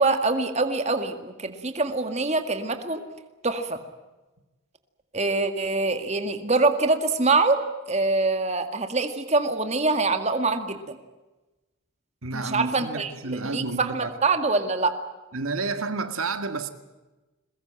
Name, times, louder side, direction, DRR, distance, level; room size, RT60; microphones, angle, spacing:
voice 1, 0.0-3.0 3.4-3.8 5.1-7.6 7.9-11.0 12.3-14.9, right 3 dB, 30° right, 2.0 m, -24 dB
voice 2, 12.2-14.1 15.3-16.7, right 3 dB, 85° right, 2.0 m, -30 dB
22.5 x 21.0 x 9.0 m
head